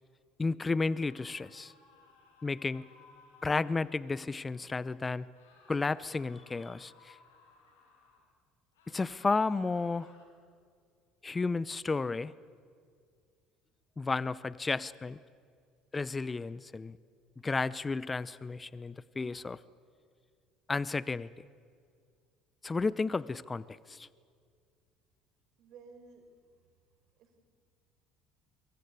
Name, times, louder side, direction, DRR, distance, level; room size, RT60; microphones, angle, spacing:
voice 1, 0.4-1.7 2.4-2.9 3.4-5.3 5.7-7.2 8.9-10.1 11.2-12.3 14.0-15.2 15.9-17.0 17.4-19.6 20.7-21.3 22.6-24.1, left 3 dB, 25° left, 19 dB, 0.7 m, -32 dB
sound 1, 0.8-4.4 5.3-8.3 8.7-10.2, left 4 dB, 90° left, 5.3 m, -61 dB
voice 2, 25.6-26.3 27.2-27.4, right 4 dB, 60° right, 6 dB, 4.5 m, -54 dB
24.0 x 23.0 x 8.4 m, 2.2 s
hypercardioid pair, 75°, 0 cm